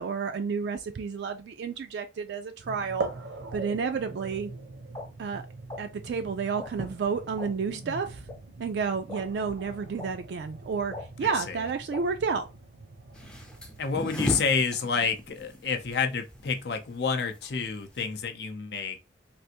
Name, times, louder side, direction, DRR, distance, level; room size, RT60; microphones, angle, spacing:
voice 1, 0.0-3.1 3.5-4.5 5.2-5.4 5.8-8.3 8.6-12.5, right 5 dB, 65° right, 0.3 m, -31 dB
sound 1, 2.6-14.5, right 2 dB, 85° right, 0.8 m, -42 dB
sound 2, 4.9-5.0 5.7-5.8 6.6-6.7 7.4-7.5 8.3-8.4 9.1-9.2 10.0-10.1 10.9-11.0 11.9-12.0, left 2 dB, 20° left, 0.9 m, -38 dB
voice 2, 11.2-11.6 13.8-19.0, left 5 dB, 60° left, 0.5 m, -29 dB
sound 3, 13.1-18.3, left 1 dB, 5° left, 0.5 m, -36 dB
3.4 x 2.5 x 2.8 m
head